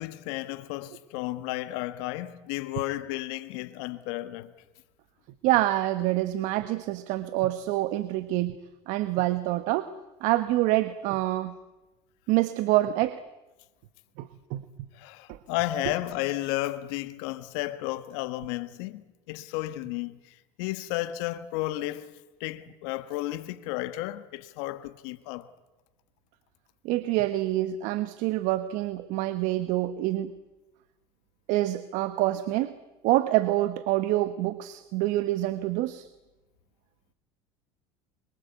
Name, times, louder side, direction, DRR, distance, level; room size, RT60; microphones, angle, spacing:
voice 1, 0.0-4.5 14.9-25.5, left 16 dB, 75° left, 1.6 m, -33 dB
voice 2, 5.4-8.6 8.9-9.9 10.2-11.6 12.3-13.2 14.2-14.6 15.3-15.4 26.8-30.3 31.5-32.7 33.0-36.1, right 16 dB, 65° right, 1.3 m, -26 dB
24.5 x 23.5 x 8.3 m
supercardioid pair, 95°, 14 cm